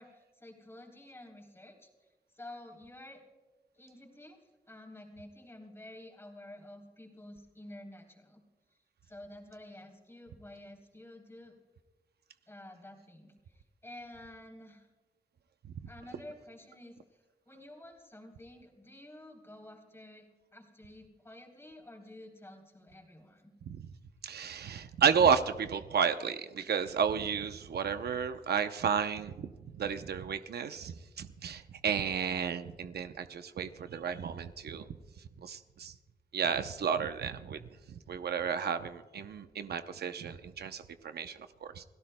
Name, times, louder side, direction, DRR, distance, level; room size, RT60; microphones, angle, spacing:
voice 1, 0.0-2.1 2.3-3.2 3.7-4.4 4.7-8.4 9.0-11.6 12.5-14.9 15.9-17.0 17.4-23.5, left 1 dB, 15° left, 1 dB, 3.4 m, -51 dB
voice 2, 24.2-34.9 35.4-35.9 36.3-37.6 37.9-41.8, right 7 dB, 75° right, 9 dB, 0.7 m, -32 dB
29.5 x 17.5 x 2.2 m, 1.3 s
wide cardioid pair, 135°, 17 cm